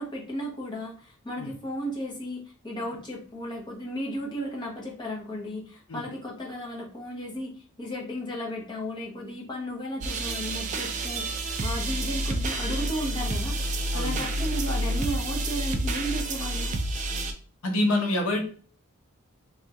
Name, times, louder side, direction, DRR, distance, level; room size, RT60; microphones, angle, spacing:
voice 1, 0.0-16.7, equal, 20° left, -2 dB, 0.8 m, -35 dB
sound 1, 10.0-17.3, right 1 dB, 35° right, 0.4 m, -29 dB
voice 2, 17.6-18.4, left 1 dB, 75° left, 3 dB, 0.7 m, -26 dB
3.5 x 2.2 x 2.7 m, 0.42 s
head